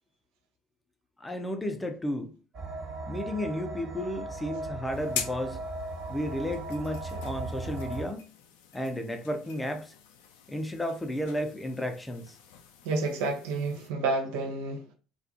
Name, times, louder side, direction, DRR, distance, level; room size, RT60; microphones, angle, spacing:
voice 1, 1.2-2.3 3.1-5.6 6.1-8.2 8.7-9.9 10.5-12.3, equal, 15° left, 0.5 m, -33 dB
sound 1, 2.5-8.0, right 2 dB, 45° right, 0.9 m, -37 dB
sound 2, 4.9-13.9, left 7 dB, 70° left, 0.4 m, -44 dB
voice 2, 12.8-14.9, right 3 dB, 70° right, 0.5 m, -30 dB
2.4 x 2.3 x 2.6 m
hypercardioid pair, 60°, 0 cm